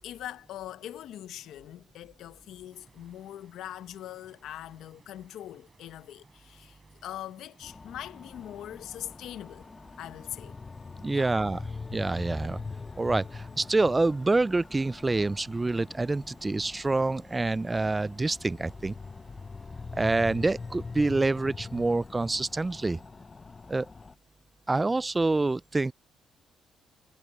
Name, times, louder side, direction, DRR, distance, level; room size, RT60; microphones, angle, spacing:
voice 1, 0.0-9.7 10.0-10.6 11.1-11.3, left 12 dB, 80° left, 0.9 m, -42 dB
sound 1, 2.7-21.1, right 5 dB, 40° right, 7.3 m, -65 dB
sound 2, 7.6-24.1, left 4 dB, 30° left, 0.6 m, -43 dB
voice 2, 11.0-11.6 11.9-12.6 13.0-18.9 19.9-23.0 23.7-23.9 24.7-25.9, right 3 dB, 20° right, 0.3 m, -27 dB
cardioid pair, 90°, 0 cm